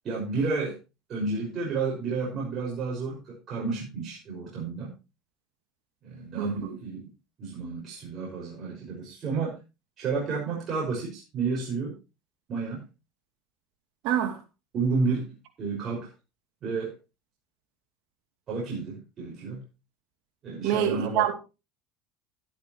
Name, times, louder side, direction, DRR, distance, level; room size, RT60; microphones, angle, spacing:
voice 1, 0.0-0.8 1.1-4.9 6.0-7.1 7.4-9.6 10.0-12.0 12.5-12.8 14.7-15.3 15.6-16.1 16.6-16.9 18.5-19.6 20.4-21.3, right 4 dB, 40° right, 5.7 m, -31 dB
voice 2, 6.4-6.8 14.0-14.4 20.6-21.4, right 11 dB, 70° right, 2.9 m, -26 dB
12.5 x 12.0 x 3.1 m
supercardioid pair, 100°, 0 cm